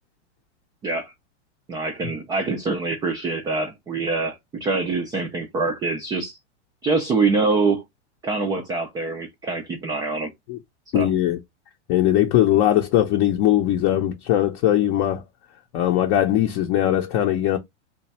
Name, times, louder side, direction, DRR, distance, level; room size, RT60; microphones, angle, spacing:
voice 1, 1.7-6.4 6.8-7.8 8.2-10.3 10.9-11.1, right 3 dB, 10° right, 0.3 m, -24 dB
voice 2, 10.9-11.4 11.9-15.2 15.7-17.6, left 12 dB, 40° left, 0.6 m, -20 dB
3.1 x 2.3 x 4.0 m
hypercardioid pair, 125°, 36 cm